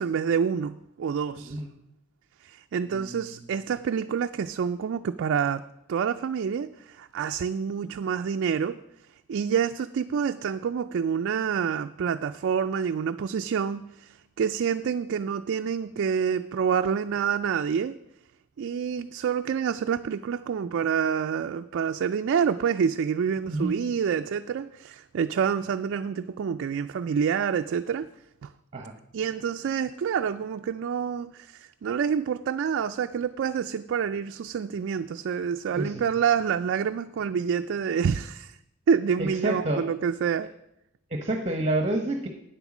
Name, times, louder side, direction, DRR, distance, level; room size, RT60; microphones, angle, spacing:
voice 1, 0.0-1.6 2.4-5.6 5.9-8.8 9.3-18.0 18.6-28.1 28.4-28.5 29.1-38.6 38.9-40.5, right 7 dB, 60° right, 7 dB, 0.3 m, -27 dB
voice 2, 1.4-1.7 2.9-3.3 23.5-23.7 28.7-28.9 35.8-35.9 39.2-39.9 41.1-42.3, right 1 dB, 30° right, 5 dB, 0.9 m, -28 dB
9.2 x 8.0 x 6.0 m, 0.83 s
head